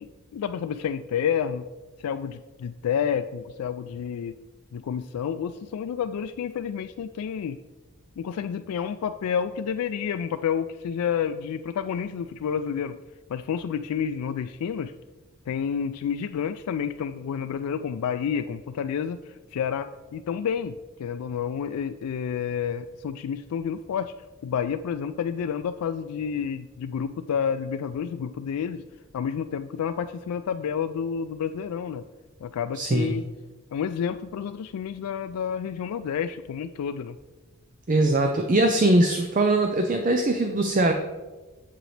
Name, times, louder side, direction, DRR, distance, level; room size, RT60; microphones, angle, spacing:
voice 1, 0.0-1.7 2.0-4.4 4.7-7.6 8.2-13.0 13.3-14.9 15.5-24.1 24.4-28.8 29.1-32.0 32.4-33.2 33.7-37.2, left 7 dB, 90° left, 9 dB, 0.3 m, -29 dB
voice 2, 32.7-33.2 37.9-40.9, right 2 dB, 35° right, 5 dB, 0.5 m, -21 dB
7.7 x 7.5 x 3.3 m, 1.2 s
head